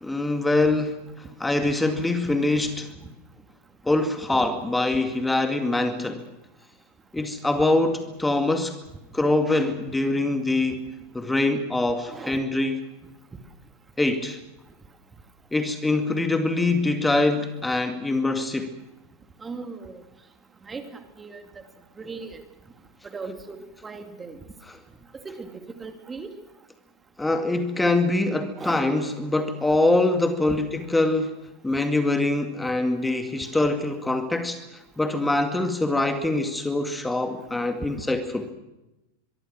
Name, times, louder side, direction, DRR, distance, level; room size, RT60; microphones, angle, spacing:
voice 1, 0.0-2.9 3.8-6.3 7.1-8.8 9.1-10.8 11.1-12.8 14.0-14.4 15.5-18.8 27.2-31.4 31.6-38.5, left 2 dB, 5° left, 7 dB, 2.2 m, -24 dB
voice 2, 12.1-12.4 19.4-20.0 20.6-21.4 22.0-22.4 23.1-24.4 25.1-26.3 28.6-28.9 30.5-30.6, right 4 dB, 15° right, 7 dB, 2.4 m, -38 dB
24.5 x 23.0 x 6.2 m, 0.97 s
figure-of-eight pair, 90°, 0 cm